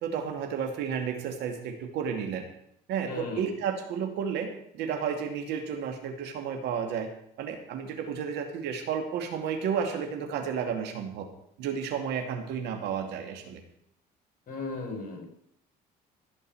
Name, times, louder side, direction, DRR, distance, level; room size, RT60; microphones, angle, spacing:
voice 1, 0.0-2.5 2.9-7.1 7.4-11.3 11.6-13.6, right 7 dB, 85° right, 4 dB, 2.5 m, -32 dB
voice 2, 3.1-3.4 14.5-15.2, left 3 dB, 50° left, 3 dB, 5.4 m, -36 dB
16.5 x 5.6 x 9.5 m, 0.72 s
cardioid pair, 110°, 17 cm